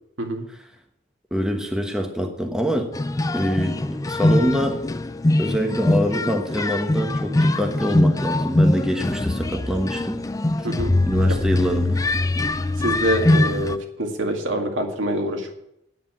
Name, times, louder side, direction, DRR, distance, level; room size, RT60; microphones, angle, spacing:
voice 1, 1.3-2.9 3.3-4.8 5.4-10.2 11.0-12.0, equal, 5° right, 3 dB, 1.1 m, -25 dB
sound 1, 2.9-13.8, left 2 dB, 15° left, 0.4 m, -22 dB
voice 2, 10.6-10.9 12.8-15.5, right 1 dB, 80° right, 2 dB, 2.1 m, -25 dB
9.5 x 8.1 x 7.5 m, 0.78 s
head